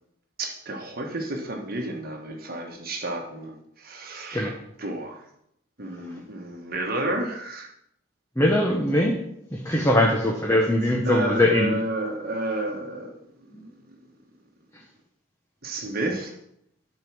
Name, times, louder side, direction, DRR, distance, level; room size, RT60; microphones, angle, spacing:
voice 1, 0.4-4.5 4.8-5.2 5.8-7.7 9.7-10.0 11.0-13.1 13.9-14.0 15.6-16.3, right 1 dB, 45° right, 1 dB, 1.4 m, -31 dB
voice 2, 8.4-9.1 9.6-11.8, left 1 dB, 15° left, -1 dB, 1.1 m, -21 dB
11.5 x 5.4 x 6.1 m, 0.75 s
head